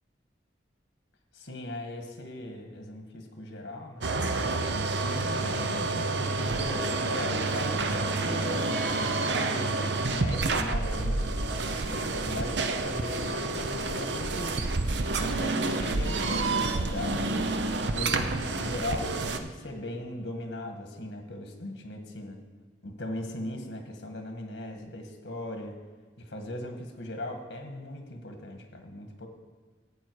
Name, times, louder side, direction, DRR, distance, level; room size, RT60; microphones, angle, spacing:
voice 1, 1.3-4.1 5.0-11.5 11.8-14.7 15.2-17.4 17.9-22.4 22.8-25.8 26.2-29.3, left 1 dB, 65° left, 4 dB, 1.7 m, -38 dB
sound 1, 4.0-19.4, right 3 dB, 70° right, 0.7 m, -29 dB
15.0 x 8.6 x 4.7 m, 1.3 s
head